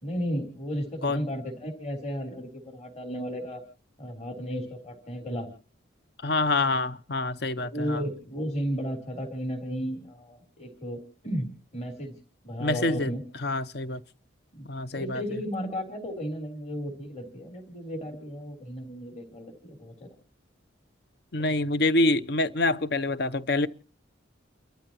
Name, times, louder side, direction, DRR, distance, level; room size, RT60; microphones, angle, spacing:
voice 1, 0.0-3.6 4.0-5.5 7.6-12.1 12.4-13.2 14.5-14.7 14.9-20.1 21.4-21.5, equal, 35° left, 3.5 m, -34 dB
voice 2, 6.2-8.0 12.6-13.1 13.4-14.0 14.7-15.2 21.3-23.7, left 2 dB, 55° left, 0.7 m, -26 dB
30.0 x 14.0 x 2.9 m
head